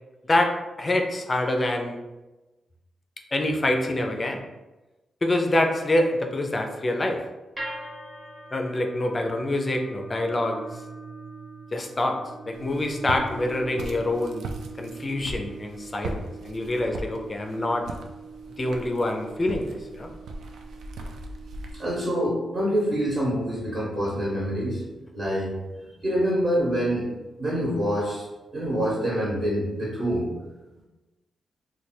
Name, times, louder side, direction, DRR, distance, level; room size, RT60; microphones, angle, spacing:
voice 1, 0.8-2.0 3.3-4.4 5.2-7.2 8.5-10.6 11.7-12.2 12.5-14.5 14.8-17.8 18.6-19.7 19.9-20.1, left 1 dB, 25° left, 3 dB, 0.4 m, -26 dB
sound 1, 7.6-23.8, right 3 dB, 10° right, 0.8 m, -43 dB
Walk footsteps, 12.5-21.7, right 2 dB, 80° right, 0.4 m, -39 dB
voice 2, 21.7-25.5 26.0-27.1 27.4-28.2 28.5-30.3, equal, 35° right, -6 dB, 1.0 m, -26 dB
3.2 x 2.2 x 4.3 m, 1.1 s
wide cardioid pair, 160°, 0 cm